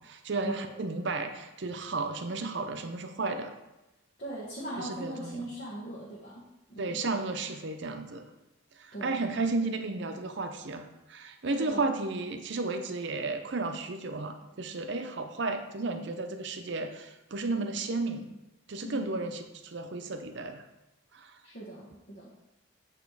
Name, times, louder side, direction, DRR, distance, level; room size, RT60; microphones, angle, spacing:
voice 1, 0.0-3.6 4.8-5.5 6.8-8.3 8.8-18.3 18.7-20.6 21.1-21.4, right 3 dB, 55° right, 6 dB, 0.6 m, -33 dB
voice 2, 4.2-7.0 8.9-9.2 11.4-11.9 18.8-19.0 21.4-22.3, right 1 dB, 45° left, -7 dB, 1.2 m, -40 dB
8.2 x 3.0 x 4.7 m, 1.0 s
head